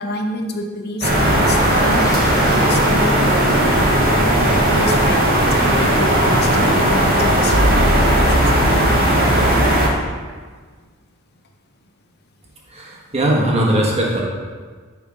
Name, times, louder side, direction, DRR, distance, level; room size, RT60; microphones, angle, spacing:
voice 1, 0.0-7.7 8.3-8.7, left 1 dB, 50° left, 3 dB, 0.6 m, -28 dB
sound 1, 1.0-9.9, right 1 dB, 45° right, 1.1 m, -16 dB
sound 2, 1.2-7.2, left 2 dB, 15° left, 0.8 m, -33 dB
voice 2, 12.7-14.2, right 1 dB, 30° right, -3 dB, 1.2 m, -19 dB
7.0 x 3.6 x 5.0 m, 1.5 s
head